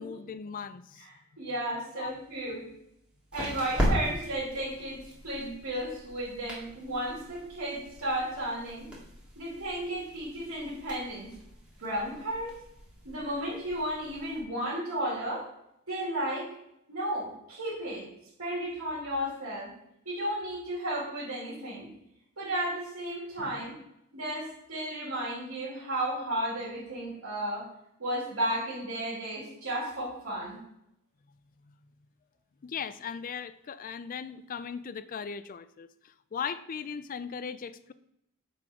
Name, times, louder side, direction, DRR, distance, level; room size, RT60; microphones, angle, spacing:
voice 1, 0.0-1.1 1.9-2.1 23.4-23.6 31.7-31.8 32.6-37.9, left 6 dB, 40° left, 14 dB, 0.4 m, -38 dB
voice 2, 1.0-2.7 3.3-8.9 9.4-11.3 11.8-12.6 13.0-15.5 15.9-16.5 16.9-18.1 18.4-19.7 20.1-21.9 22.4-23.7 24.1-27.7 28.0-30.6, right 1 dB, 85° right, -7 dB, 2.3 m, -33 dB
sound 1, 2.0-14.4, equal, 5° right, 2.0 m, -38 dB
7.4 x 4.4 x 4.9 m, 0.79 s
head